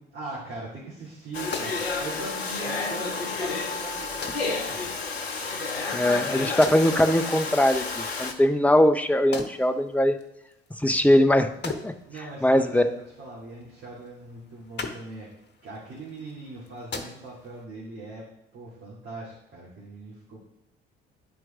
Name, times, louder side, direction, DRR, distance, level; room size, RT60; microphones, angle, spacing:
voice 1, 0.1-4.9 12.1-15.3 15.6-18.2 18.5-20.5, right 2 dB, 40° right, -6 dB, 2.5 m, -40 dB
sound 1, 1.0-17.6, left 4 dB, 35° left, 1.1 m, -43 dB
Domestic sounds home sounds, 1.3-8.3, left 4 dB, 85° left, 0.6 m, -31 dB
voice 2, 5.9-10.2 10.8-11.9 12.4-12.9, left 1 dB, 5° left, 6 dB, 0.6 m, -21 dB
9.9 x 4.6 x 3.6 m, 0.86 s
figure-of-eight pair, 50°, 30 cm